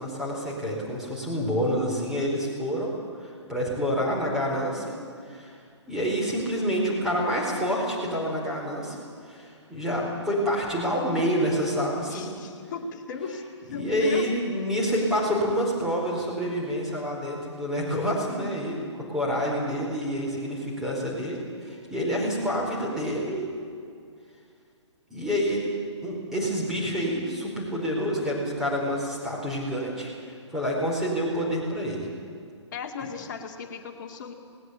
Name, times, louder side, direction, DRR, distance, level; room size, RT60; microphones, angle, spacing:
voice 1, 0.0-2.9 3.2-4.9 5.2-5.5 5.9-9.0 9.2-12.3 13.7-23.4 25.1-25.7 26.0-30.1 30.5-32.1, equal, 5° right, -4 dB, 4.6 m, -28 dB
voice 2, 12.1-13.4 13.7-14.3 32.7-34.3, left 6 dB, 40° left, 4 dB, 2.2 m, -36 dB
19.0 x 19.0 x 8.6 m, 2.3 s
figure-of-eight pair, 130°, 16 cm